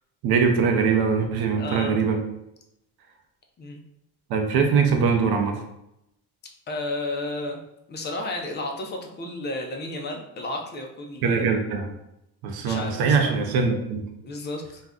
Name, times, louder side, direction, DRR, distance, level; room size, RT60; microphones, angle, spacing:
voice 1, 0.2-2.2 4.3-5.6 11.2-11.9 12.4-14.0, right 5 dB, 70° right, 4 dB, 0.6 m, -22 dB
voice 2, 1.6-2.0 3.6-3.8 6.7-7.6 7.9-11.5 12.6-13.3 14.2-14.8, left 2 dB, 30° left, 2 dB, 0.4 m, -32 dB
2.5 x 2.2 x 3.5 m, 0.83 s
cardioid pair, 140°, 39 cm